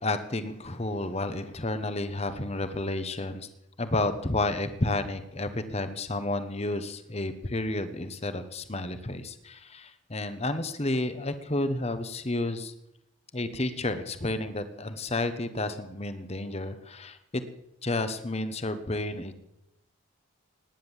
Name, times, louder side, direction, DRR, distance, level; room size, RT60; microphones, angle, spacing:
voice 1, 0.0-3.5 3.8-12.7 13.3-17.4 17.8-19.3, left 2 dB, 30° left, 11 dB, 1.1 m, -31 dB
18.0 x 10.5 x 7.3 m, 0.84 s
head